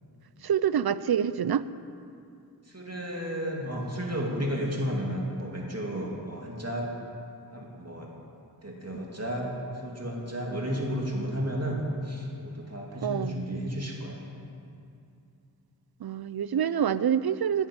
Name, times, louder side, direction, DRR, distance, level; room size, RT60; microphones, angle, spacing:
voice 1, 0.4-1.7 13.0-13.4 16.0-17.7, right 8 dB, 75° right, 16 dB, 0.5 m, -26 dB
voice 2, 2.6-6.9 7.5-8.1 8.6-14.5, equal, 40° right, -1 dB, 2.6 m, -33 dB
10.5 x 9.6 x 9.0 m, 2.5 s
wide cardioid pair, 55°, 38 cm